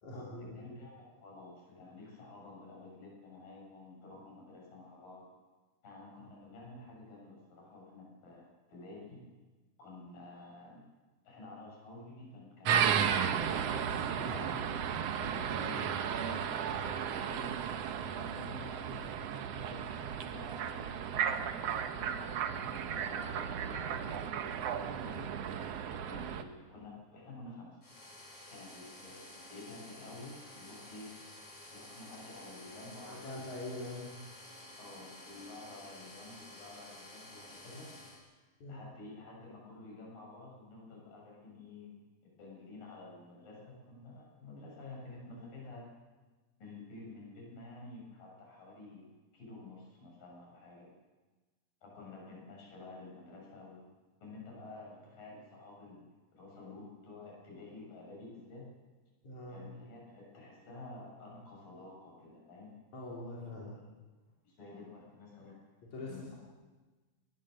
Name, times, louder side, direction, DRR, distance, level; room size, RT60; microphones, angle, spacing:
voice 1, 0.0-0.5 14.1-14.4 33.1-34.1 38.6-38.8 59.2-59.6 62.9-63.8 65.8-66.4, left 2 dB, 55° left, -5 dB, 5.2 m, -43 dB
voice 2, 0.5-5.3 5.8-9.2 9.8-10.8 11.3-13.7 14.3-19.1 19.5-25.4 25.9-27.8 28.5-29.2 29.5-31.1 31.7-33.4 34.8-37.9 38.7-42.1 42.4-45.9 46.6-50.9 51.8-53.8 54.2-56.1 56.4-58.7 59.5-62.8 64.4-65.5 66.1-66.3, left 2 dB, 75° left, -2 dB, 8.6 m, -50 dB
sound 1, 12.6-26.4, right 8 dB, 65° right, 1.7 m, -34 dB
sound 2, 27.8-38.2, left 1 dB, 30° left, 5.8 m, -52 dB
21.0 x 21.0 x 6.6 m, 1.2 s
omnidirectional pair, 4.0 m